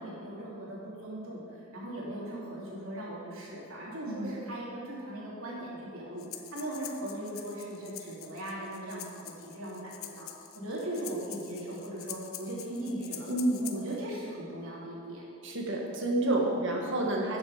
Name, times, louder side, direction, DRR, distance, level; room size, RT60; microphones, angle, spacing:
voice 1, 0.0-6.2 6.5-10.3 10.5-13.3 13.6-15.2, right 1 dB, 85° right, -5 dB, 3.0 m, -39 dB
voice 2, 4.1-4.4 13.3-13.6 15.4-17.4, right 1 dB, 60° right, -1 dB, 1.8 m, -29 dB
Breathing, 6.2-14.0, left 11 dB, 85° left, 0.7 m, -45 dB
13.0 x 7.3 x 5.0 m, 2.4 s
head